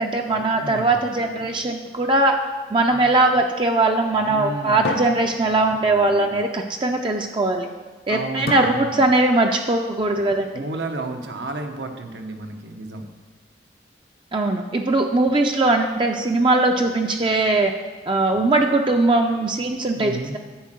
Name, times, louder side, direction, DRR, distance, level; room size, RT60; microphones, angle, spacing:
voice 1, 0.0-2.4 2.7-7.7 8.1-10.6 14.3-17.7 18.1-20.4, right 2 dB, 30° right, 3 dB, 0.4 m, -20 dB
voice 2, 0.5-0.9 4.3-4.9 8.1-9.0 10.5-13.1 19.9-20.4, right 2 dB, 85° right, 4 dB, 1.0 m, -32 dB
sound 1, 1.2-2.8 4.8-6.2 8.5-9.6, left 2 dB, 70° left, 0.8 m, -34 dB
10.0 x 4.5 x 7.7 m, 1.4 s
head